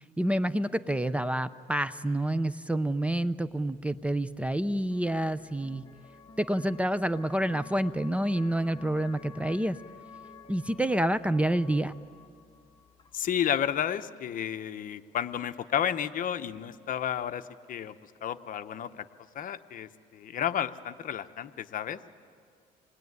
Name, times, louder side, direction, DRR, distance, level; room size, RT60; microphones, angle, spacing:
voice 1, 0.2-5.8 6.4-9.8 10.5-11.9, right 1 dB, 5° right, 13 dB, 0.6 m, -28 dB
sound 1, 3.7-13.8, left 4 dB, 25° left, 1.9 m, -52 dB
voice 2, 13.1-17.9 18.2-18.9 19.3-22.0, left 9 dB, 55° left, 10 dB, 1.0 m, -32 dB
26.5 x 21.0 x 9.5 m, 2.1 s
cardioid pair, 110°, 17 cm